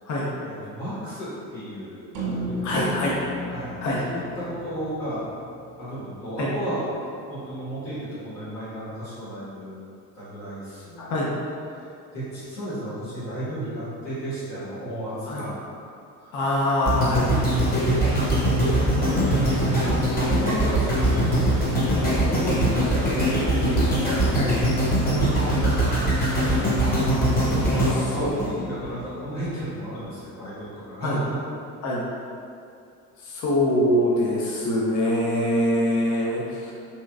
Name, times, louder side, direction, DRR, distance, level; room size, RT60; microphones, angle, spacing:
voice 1, 0.4-3.1 3.5-5.2 5.8-6.8 7.3-9.8 10.1-11.1 11.7-15.8 16.2-16.3 18.8-23.5 24.7-26.3 27.7-31.4, right 1 dB, 85° left, -13 dB, 1.5 m, -33 dB
sound 1, 2.1-6.6, right 1 dB, 45° right, 0.9 m, -35 dB
voice 2, 2.6-3.1 3.8-4.0 6.4-6.5 11.0-11.3 15.3-15.5 16.3-17.3 24.3-24.5 27.0-27.6 28.2-28.3 31.0-31.2 31.8-32.0 33.2-36.7, left 1 dB, 40° left, -5 dB, 0.7 m, -24 dB
sound 2, 16.9-29.1 29.6-29.7, right 1 dB, 20° left, 1.1 m, -22 dB
3.1 x 3.0 x 2.4 m, 2.5 s
hypercardioid pair, 55°, 46 cm